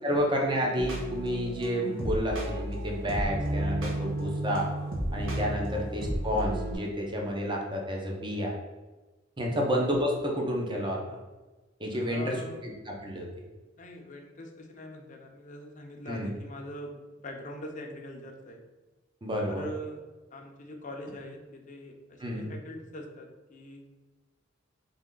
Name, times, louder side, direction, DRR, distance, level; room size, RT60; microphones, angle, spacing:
voice 1, 0.0-4.7 5.1-8.5 9.4-11.0 11.8-13.3 16.1-16.3 19.2-19.7 22.2-22.5, equal, 25° right, 0 dB, 0.7 m, -30 dB
sound 1, 0.8-6.8, right 1 dB, 75° right, 0.9 m, -32 dB
voice 2, 11.9-12.6 13.8-18.6 19.4-20.0 20.3-23.9, equal, 40° left, 2 dB, 0.6 m, -43 dB
3.6 x 3.1 x 3.7 m, 1.2 s
head